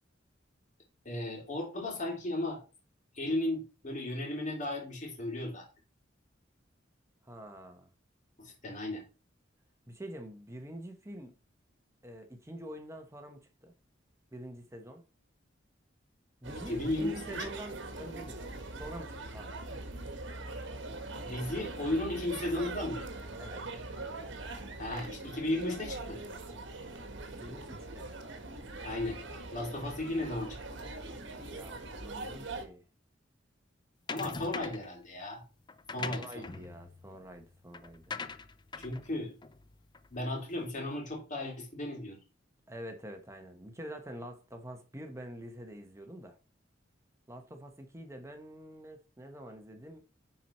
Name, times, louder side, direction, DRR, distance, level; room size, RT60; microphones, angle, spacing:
voice 1, 1.0-2.6 3.1-5.7 8.4-9.0 16.7-17.5 21.2-23.1 24.8-26.2 28.8-29.2 29.5-30.8 34.1-35.4 35.9-36.4 38.8-39.3 40.1-42.2, left 1 dB, 40° left, 2.9 m, -35 dB
voice 2, 7.2-7.9 9.9-11.3 12.0-13.7 14.3-15.0 16.4-19.6 23.4-23.6 27.4-28.1 31.1-32.8 36.0-38.1 42.7-46.4 47.3-50.0, equal, 15° right, 1.1 m, -46 dB
sound 1, 16.4-32.7, right 2 dB, 70° right, 1.6 m, -42 dB
sound 2, 34.1-34.9 35.7-40.4, left 4 dB, 25° left, 0.5 m, -42 dB
9.9 x 4.6 x 4.3 m
head